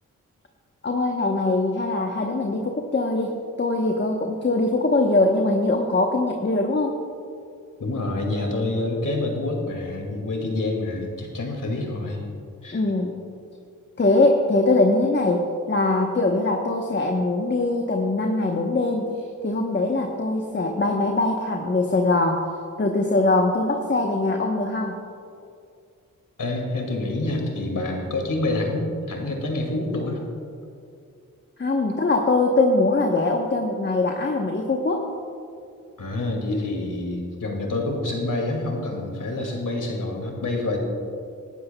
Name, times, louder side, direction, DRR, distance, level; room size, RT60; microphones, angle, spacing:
voice 1, 0.8-7.0 12.7-13.3 14.0-22.4 22.8-25.0 31.6-35.1, left 2 dB, 35° left, 2 dB, 1.0 m, -22 dB
voice 2, 7.8-12.3 12.6-12.8 26.4-30.2 36.0-40.8, left 2 dB, 70° left, 1 dB, 2.3 m, -27 dB
19.5 x 11.5 x 2.3 m, 2.4 s
cardioid pair, 50°, 33 cm